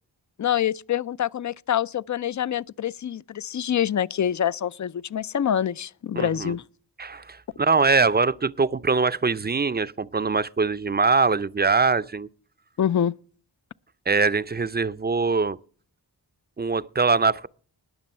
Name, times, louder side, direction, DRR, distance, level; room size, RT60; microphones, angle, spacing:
voice 1, 0.4-6.6 12.8-13.1, left 9 dB, 45° left, 0.4 m, -26 dB
voice 2, 6.1-6.5 7.0-12.3 14.1-15.6 16.6-17.5, right 4 dB, 25° right, 0.5 m, -23 dB
20.0 x 6.9 x 4.3 m
cardioid pair, 50°, 41 cm